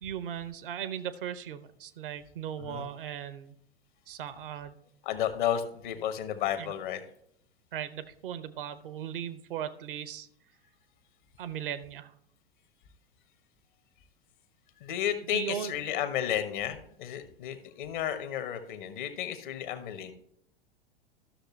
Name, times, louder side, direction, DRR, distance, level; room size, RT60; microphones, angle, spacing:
voice 1, 0.0-3.6 4.1-4.8 6.6-6.7 7.7-10.3 11.4-12.1 15.3-15.7, right 9 dB, 60° right, 14 dB, 0.8 m, -37 dB
voice 2, 5.0-7.0 14.8-20.1, left 10 dB, 55° left, 9 dB, 1.2 m, -32 dB
13.0 x 6.6 x 3.1 m, 0.72 s
figure-of-eight pair, 90°, 30 cm